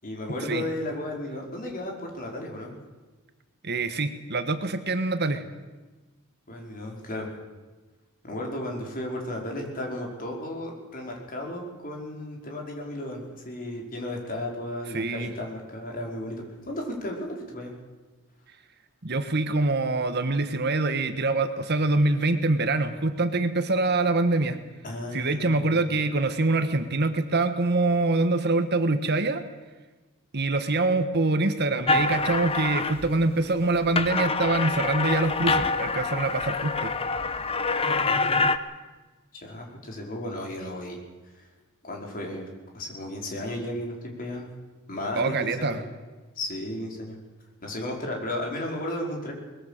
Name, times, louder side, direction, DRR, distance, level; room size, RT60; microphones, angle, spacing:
voice 1, 0.0-2.7 6.5-7.3 8.2-17.7 24.8-25.8 39.3-41.0 41.3-41.5 41.8-42.5 42.7-44.5 44.9-45.8 46.4-47.2 47.6-49.3, left 1 dB, 40° left, 0 dB, 4.9 m, -34 dB
voice 2, 3.6-5.4 14.9-15.3 19.0-24.6 25.1-29.4 30.3-36.9 45.2-45.8, right 2 dB, 50° right, 9 dB, 1.4 m, -25 dB
sound 1, 31.9-33.3 33.7-38.6, left 3 dB, 25° left, 0.9 m, -26 dB
22.5 x 21.0 x 6.7 m, 1.2 s
head